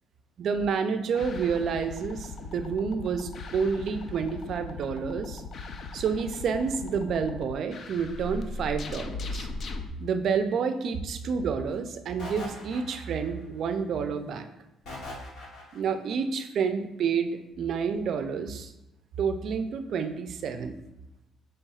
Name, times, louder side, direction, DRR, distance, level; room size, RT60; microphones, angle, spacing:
voice 1, 0.4-5.4 5.9-9.5 10.0-14.5 15.7-18.7 19.2-20.8, right 6 dB, 60° right, 8 dB, 0.4 m, -29 dB
sound 1, 1.1-9.9, left 3 dB, 50° left, 0.4 m, -38 dB
sound 2, 12.2-13.4 14.9-16.0, left 1 dB, 80° left, 1.3 m, -40 dB
5.5 x 3.3 x 2.3 m, 0.90 s
cardioid pair, 100°, 0 cm